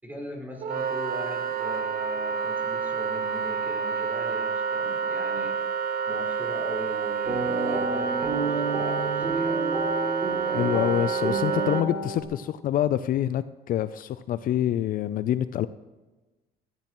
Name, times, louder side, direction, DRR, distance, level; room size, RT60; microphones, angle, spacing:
voice 1, 0.0-5.6 6.0-9.6, left 1 dB, 10° right, -2 dB, 4.7 m, -40 dB
Wind instrument woodwind instrument, 0.6-11.8, right 6 dB, 60° right, 1.1 m, -28 dB
sound 1, 7.2-12.2, right 2 dB, 35° right, 2.9 m, -30 dB
voice 2, 10.5-15.7, left 11 dB, 55° left, 14 dB, 0.4 m, -26 dB
17.0 x 13.5 x 3.0 m, 1.2 s
cardioid pair, 110°, 17 cm